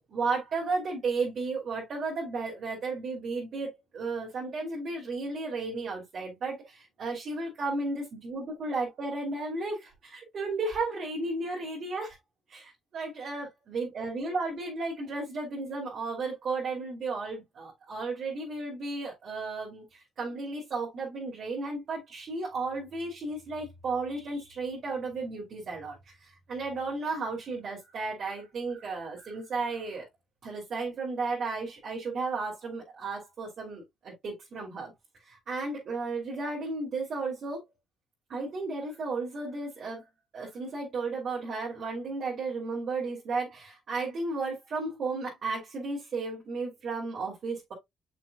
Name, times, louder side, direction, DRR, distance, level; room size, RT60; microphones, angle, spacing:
voice 1, 0.1-12.2 12.5-30.0 30.4-34.9 35.2-37.6 38.3-40.0 40.3-47.7, right 3 dB, 55° right, 3.3 m, -34 dB
6.7 x 6.3 x 2.4 m
cardioid pair, 90°, 0 cm